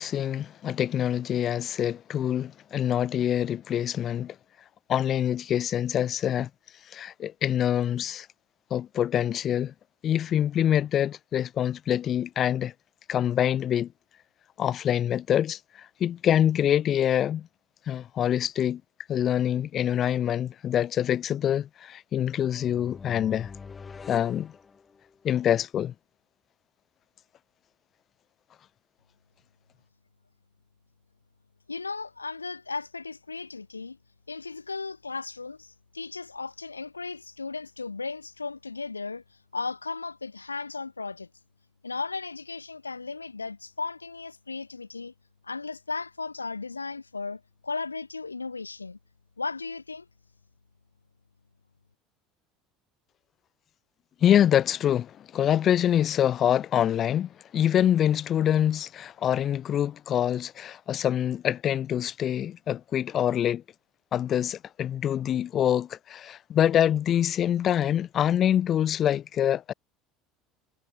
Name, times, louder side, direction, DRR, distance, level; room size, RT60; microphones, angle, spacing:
voice 1, 0.0-4.4 4.9-6.5 6.9-8.3 8.7-9.7 10.0-12.7 13.1-13.9 14.6-17.5 17.9-18.8 19.1-23.5 24.1-24.5 25.2-25.9 54.2-63.6 64.1-69.7, left 10 dB, 40° left, 0.3 m, -25 dB
sound 1, 22.3-25.3, left 5 dB, 25° left, 0.8 m, -45 dB
voice 2, 31.7-34.0 34.3-41.3 41.8-45.1 45.4-49.0 49.4-50.0, left 4 dB, 85° left, 0.8 m, -36 dB
figure-of-eight pair, 65°, 0 cm